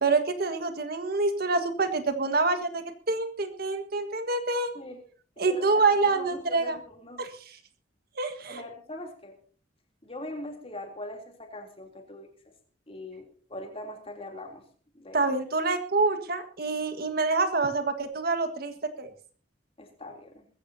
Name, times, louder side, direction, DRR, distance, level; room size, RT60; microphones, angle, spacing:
voice 1, 0.0-4.7 5.4-6.8 7.2-7.3 8.2-8.6 15.1-19.1, right 3 dB, 55° right, 8 dB, 1.6 m, -26 dB
voice 2, 5.5-7.2 8.5-9.4 10.0-12.5 12.9-14.7 15.0-15.3 19.8-20.4, left 1 dB, 30° left, 3 dB, 3.2 m, -42 dB
21.0 x 15.0 x 2.8 m, 0.41 s
head